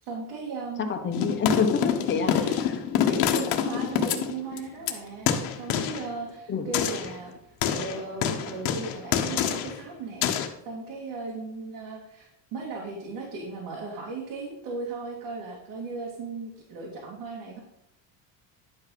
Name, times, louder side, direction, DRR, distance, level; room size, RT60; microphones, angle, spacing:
voice 1, 0.0-0.9 2.2-2.6 3.1-5.3 5.6-7.3 7.7-17.6, right 4 dB, 75° right, -3 dB, 2.7 m, -37 dB
voice 2, 0.8-2.8 6.5-6.7, left 5 dB, 25° left, 5 dB, 1.3 m, -27 dB
sound 1, 1.1-4.9 5.3-6.1 6.7-7.2 7.6-9.8 10.2-10.5, left 9 dB, 75° left, 1.3 m, -26 dB
10.5 x 5.7 x 5.8 m, 0.80 s
cardioid pair, 155°, 41 cm